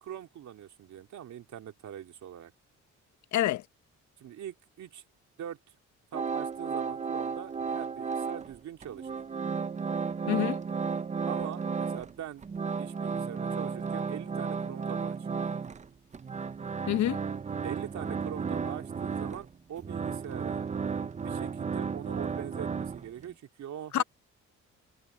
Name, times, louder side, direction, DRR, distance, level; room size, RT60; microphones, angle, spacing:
voice 1, 0.0-2.5 4.2-5.0 5.4-5.6 6.1-9.2 11.3-12.4 12.8-15.3 17.6-20.7 21.2-24.0, right 10 dB, 70° right, 2.9 m, -42 dB
voice 2, 3.3-3.6 10.3-10.6 16.9-17.2 23.9-24.0, left 12 dB, 70° left, 0.8 m, -26 dB
sound 1, 6.1-8.6 8.8-12.1 12.4-23.3, right 5 dB, 25° right, 0.6 m, -33 dB
cardioid pair, 90°, 30 cm